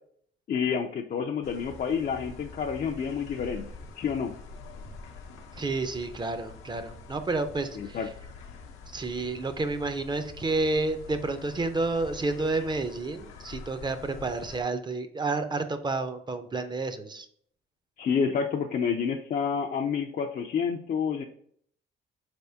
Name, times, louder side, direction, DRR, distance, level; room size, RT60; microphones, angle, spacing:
voice 1, 0.5-3.7 4.0-4.3 7.8-8.1 18.0-21.2, left 6 dB, 45° left, 3 dB, 0.4 m, -29 dB
sound 1, 1.4-14.6, left 4 dB, 90° left, 0.7 m, -46 dB
voice 2, 5.5-8.0 8.9-17.3, right 3 dB, 20° right, 9 dB, 0.5 m, -30 dB
4.2 x 3.4 x 2.7 m, 0.63 s
cardioid pair, 90°, 20 cm